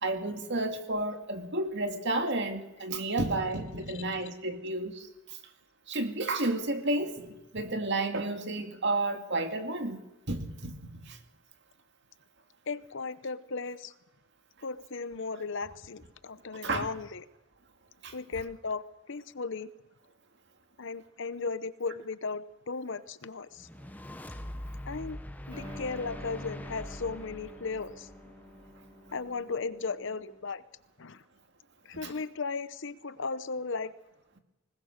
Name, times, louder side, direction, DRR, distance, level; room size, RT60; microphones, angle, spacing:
voice 1, 0.0-5.4 5.9-10.0 10.3-11.2 16.6-16.9 18.0-18.1 32.0-32.1, right 2 dB, 55° right, 6 dB, 2.3 m, -31 dB
voice 2, 12.7-13.9 14.6-17.2 18.1-19.7 20.8-23.7 24.9-25.2 25.5-28.1 29.1-30.6 31.0-31.2 31.8-33.9, left 4 dB, 60° left, 15 dB, 0.8 m, -36 dB
sound 1, 23.6-28.9, left 1 dB, 10° left, 1.1 m, -43 dB
sound 2, 25.5-30.4, left 1 dB, 20° right, 6.6 m, -48 dB
20.0 x 20.0 x 6.6 m, 0.97 s
head